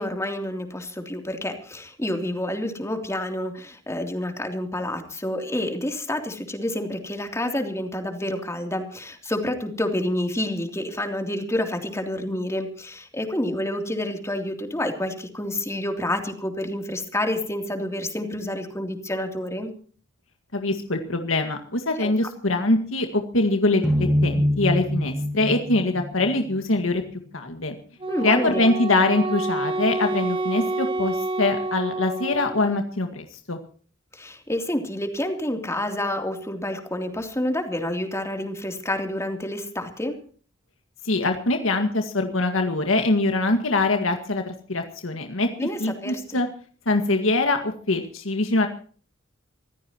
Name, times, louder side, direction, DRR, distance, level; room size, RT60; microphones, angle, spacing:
voice 1, 0.0-19.7 22.0-22.1 28.1-28.7 34.1-40.2 45.6-46.4, left 1 dB, 15° left, 4 dB, 3.2 m, -28 dB
voice 2, 20.5-27.0 27.3-27.7 28.2-33.6 41.0-45.5 45.8-46.5 46.9-48.7, left 2 dB, 90° left, 6 dB, 2.0 m, -23 dB
sound 1, 23.8-27.0, equal, 5° right, 5.2 m, -25 dB
Wind instrument woodwind instrument, 28.0-32.8, right 2 dB, 25° right, 1.5 m, -28 dB
26.0 x 15.0 x 3.0 m, 0.43 s
head